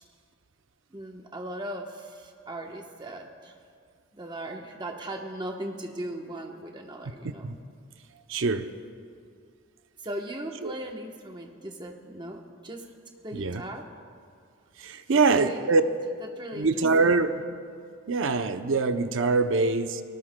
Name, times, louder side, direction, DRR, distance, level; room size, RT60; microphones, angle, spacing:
voice 1, 0.9-3.6 4.1-7.5 10.0-12.8 13.2-13.9 15.3-15.8 16.2-17.1, right 1 dB, 20° right, 2 dB, 1.0 m, -38 dB
voice 2, 8.3-8.7 10.6-10.7 13.3-13.6 14.8-15.8 16.6-17.4 18.1-20.0, right 3 dB, 65° right, 9 dB, 0.6 m, -24 dB
22.5 x 18.5 x 2.2 m, 2.2 s
head